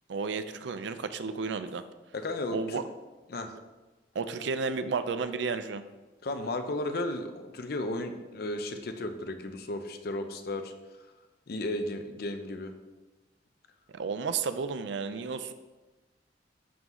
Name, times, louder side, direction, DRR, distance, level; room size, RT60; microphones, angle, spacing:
voice 1, 0.1-1.8 2.5-2.8 4.2-5.9 13.9-15.5, right 5 dB, 70° right, 11 dB, 0.4 m, -32 dB
voice 2, 2.1-2.8 3.3-3.5 6.2-10.7 11.5-12.7, left 1 dB, 55° left, 7 dB, 0.6 m, -34 dB
11.0 x 3.8 x 3.0 m, 1.2 s
head